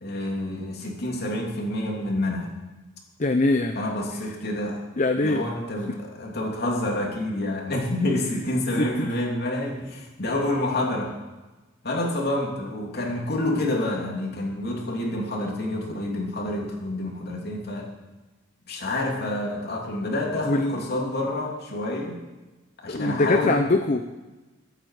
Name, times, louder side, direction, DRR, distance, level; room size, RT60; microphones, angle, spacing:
voice 1, 0.0-2.5 3.7-4.8 5.2-11.2 11.8-17.9 18.7-22.2 22.8-23.6, left 1 dB, 55° left, -1 dB, 2.9 m, -28 dB
voice 2, 3.2-3.8 5.0-5.4 5.9-6.0 8.8-9.1 20.4-20.8 22.9-24.1, left 2 dB, 40° left, 6 dB, 0.7 m, -23 dB
22.0 x 8.9 x 4.9 m, 1.2 s
head